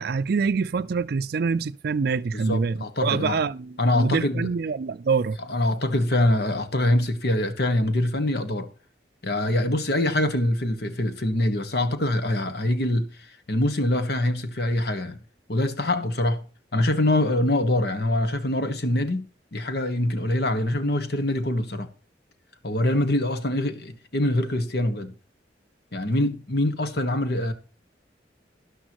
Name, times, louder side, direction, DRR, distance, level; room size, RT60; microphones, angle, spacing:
voice 1, 0.0-5.4, right 5 dB, 60° right, 0.4 m, -25 dB
voice 2, 2.3-3.4 3.8-4.5 5.5-8.7 9.2-15.2 15.5-16.4 16.7-19.2 19.5-21.9 22.6-25.1 25.9-27.5, left 1 dB, 65° left, 1.4 m, -24 dB
12.5 x 11.5 x 3.0 m
head